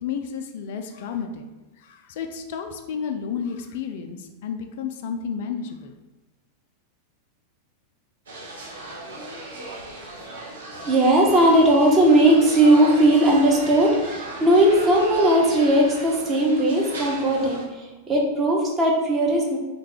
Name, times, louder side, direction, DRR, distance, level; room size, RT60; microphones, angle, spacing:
voice 1, 0.0-1.5 1.8-5.9, left 6 dB, 55° left, 6 dB, 0.3 m, -31 dB
sound 1, 8.3-17.6, right 2 dB, 70° right, 0.7 m, -36 dB
voice 2, 10.8-19.6, right 1 dB, 20° right, -1 dB, 0.8 m, -18 dB
3.2 x 2.2 x 3.5 m, 1.2 s
figure-of-eight pair, 90°, 0 cm